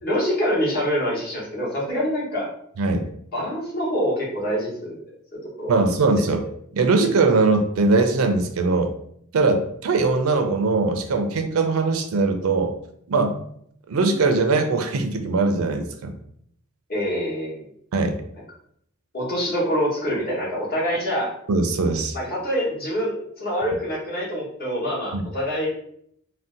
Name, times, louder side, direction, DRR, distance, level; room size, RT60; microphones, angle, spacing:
voice 1, 0.0-2.5 3.3-4.9 5.3-5.8 16.9-17.7 19.1-21.3 22.1-25.7, equal, 45° left, -4 dB, 1.0 m, -25 dB
voice 2, 2.8-3.1 5.7-6.4 6.7-8.9 9.3-12.7 13.1-13.5 13.9-16.1 17.9-18.2 21.5-22.2 25.1-25.2, right 3 dB, 70° right, 6 dB, 0.4 m, -21 dB
2.6 x 2.1 x 3.6 m, 0.69 s
head